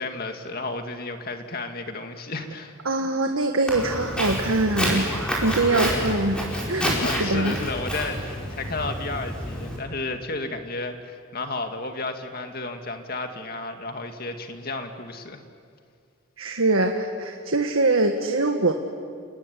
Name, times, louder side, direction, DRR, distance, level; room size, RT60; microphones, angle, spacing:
voice 1, 0.0-2.8 5.7-6.1 6.7-15.4, left 2 dB, 45° left, 5 dB, 2.2 m, -32 dB
voice 2, 2.9-6.4 6.7-7.6 16.4-18.7, right 2 dB, 85° right, 4 dB, 1.6 m, -23 dB
Walk footsteps, 3.7-9.8, equal, 5° left, 5.2 m, -29 dB
29.5 x 19.0 x 9.9 m, 2.2 s
head